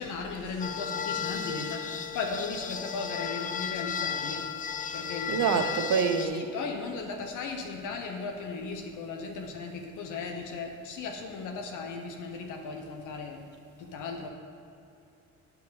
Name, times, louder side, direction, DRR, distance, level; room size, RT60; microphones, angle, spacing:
voice 1, 0.0-4.4 4.8-5.6 6.2-13.4 13.8-14.3, left 4 dB, 90° left, 3 dB, 1.0 m, -36 dB
sound 1, 0.6-6.2, left 7 dB, 30° left, 0.4 m, -34 dB
voice 2, 5.3-6.4, right 6 dB, 75° right, 7 dB, 0.8 m, -26 dB
9.4 x 4.0 x 6.9 m, 2.6 s
cardioid pair, 90°, 30 cm